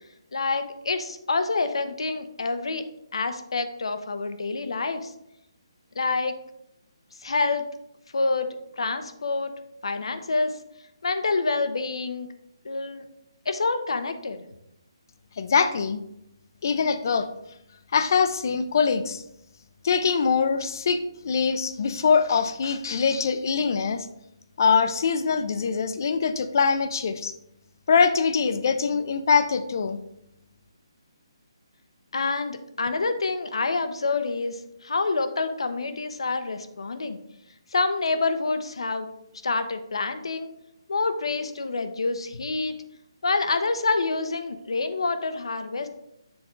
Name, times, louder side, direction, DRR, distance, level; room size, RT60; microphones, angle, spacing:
voice 1, 0.3-2.8 3.1-5.1 5.9-6.3 7.2-7.6 8.1-8.5 8.8-9.5 9.8-10.6 11.0-12.3 12.6-13.1 13.5-14.4 32.1-37.2 37.7-39.1 39.4-40.5 40.9-42.7 43.2-45.9, left 3 dB, 75° left, 10 dB, 0.7 m, -27 dB
voice 2, 15.4-16.0 16.6-17.3 17.9-19.2 19.8-24.1 24.6-27.3 27.9-30.0, left 5 dB, 40° left, 10 dB, 0.5 m, -23 dB
7.0 x 4.2 x 3.7 m, 0.80 s
hypercardioid pair, 170°, 3 cm